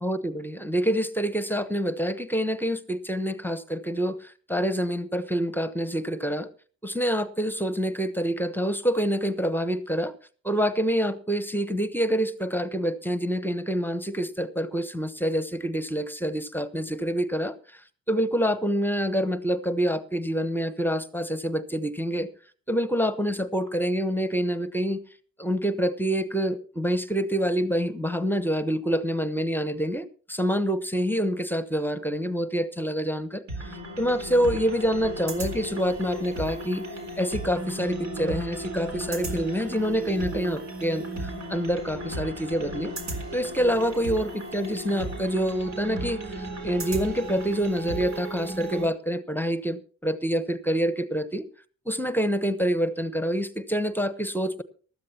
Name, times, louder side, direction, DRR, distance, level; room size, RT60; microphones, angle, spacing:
voice 1, 0.0-6.5 6.8-10.1 10.4-17.8 18.1-22.3 22.7-25.0 25.4-36.8 37.2-42.9 43.3-51.4 51.9-54.6, equal, 5° left, 12 dB, 1.0 m, -27 dB
sound 1, 33.5-48.9, right 1 dB, 65° right, 4.0 m, -35 dB
19.0 x 13.5 x 2.9 m, 0.41 s
cardioid pair, 90°, 30 cm